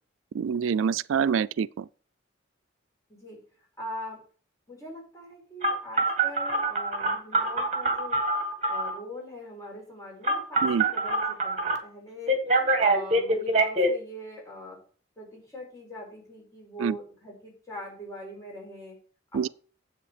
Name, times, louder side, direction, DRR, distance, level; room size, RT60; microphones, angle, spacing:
voice 1, 0.3-1.8 10.6-10.8 16.8-17.0 19.3-19.5, right 6 dB, 80° right, 0.3 m, -26 dB
voice 2, 3.1-3.4 3.8-4.2 4.7-8.2 8.7-12.4 12.8-14.8 15.2-19.0 19.3-19.5, left 1 dB, 15° left, 5.3 m, -42 dB
Telephone, 5.6-9.0 10.2-11.8 12.3-13.9, right 2 dB, 35° right, 1.8 m, -25 dB
9.7 x 7.8 x 5.0 m
head